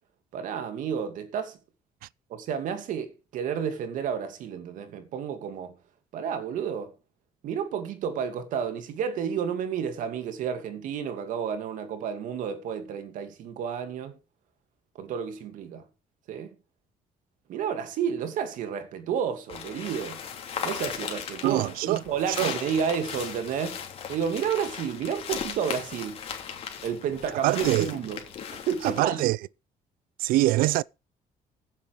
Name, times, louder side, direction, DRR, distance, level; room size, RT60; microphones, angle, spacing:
voice 1, 0.3-1.6 2.3-5.7 6.1-6.9 7.4-14.2 15.0-15.8 16.3-16.5 17.5-20.2 20.6-23.8 24.1-26.2 26.8-28.2 28.5-29.2, right 7 dB, 65° right, 2.6 m, -31 dB
sound 1, 19.5-29.0, left 7 dB, 40° left, 3.1 m, -37 dB
voice 2, 21.4-22.0 22.4-22.5 27.3-27.9 28.8-29.4 30.2-30.8, right 17 dB, 85° right, 0.5 m, -24 dB
15.5 x 7.3 x 5.0 m
cardioid pair, 165°, 15 cm